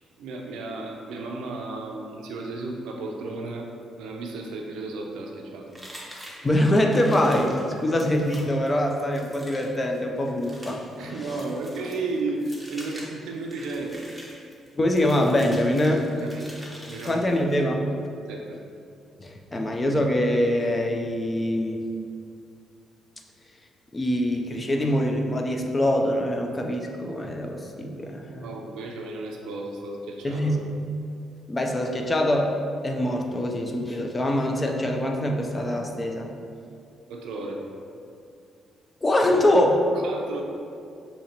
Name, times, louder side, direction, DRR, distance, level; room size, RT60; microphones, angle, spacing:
voice 1, 0.2-3.7 4.0-5.7 7.7-8.0 11.0-14.1 16.1-16.5 16.9-17.2 18.3-18.6 19.6-19.7 28.3-30.7 37.1-37.6 39.9-40.4, right 3 dB, 85° right, 1 dB, 0.5 m, -34 dB
sound 1, 5.7-17.6, equal, ahead, 0.9 m, -45 dB
voice 2, 6.4-11.3 14.7-16.3 17.0-17.9 19.2-21.8 23.9-28.5 30.2-30.7 31.5-32.6 32.8-36.3 39.0-39.9, left 1 dB, 25° left, 2 dB, 0.5 m, -24 dB
6.6 x 2.8 x 2.9 m, 2.5 s
cardioid pair, 90°, 0 cm